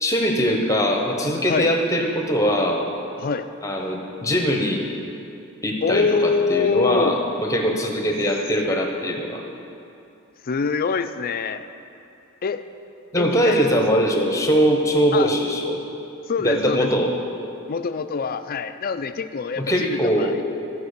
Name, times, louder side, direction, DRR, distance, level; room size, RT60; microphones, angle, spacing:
voice 1, 0.0-2.8 3.6-4.8 5.6-9.4 13.1-15.8 16.4-17.1 19.6-20.4, equal, 15° left, 2 dB, 1.0 m, -21 dB
voice 2, 5.8-7.2 10.4-11.7 12.4-12.6 13.2-13.8 15.1-15.4 16.3-17.0 17.7-20.4, left 5 dB, 45° left, 11 dB, 0.4 m, -25 dB
14.0 x 4.8 x 6.7 m, 2.7 s
head